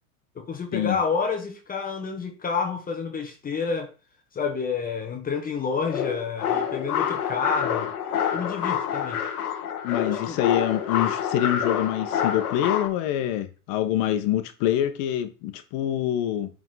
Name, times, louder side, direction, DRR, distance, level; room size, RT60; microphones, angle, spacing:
voice 1, 0.3-3.9 4.3-7.9 8.3-9.2 10.1-10.4, left 5 dB, 20° left, 1.4 m, -29 dB
sound 1, 5.9-12.9, left 8 dB, 85° left, 1.6 m, -27 dB
voice 2, 9.8-16.5, left 12 dB, 50° left, 1.5 m, -25 dB
11.5 x 4.3 x 4.2 m
hypercardioid pair, 115°, 43 cm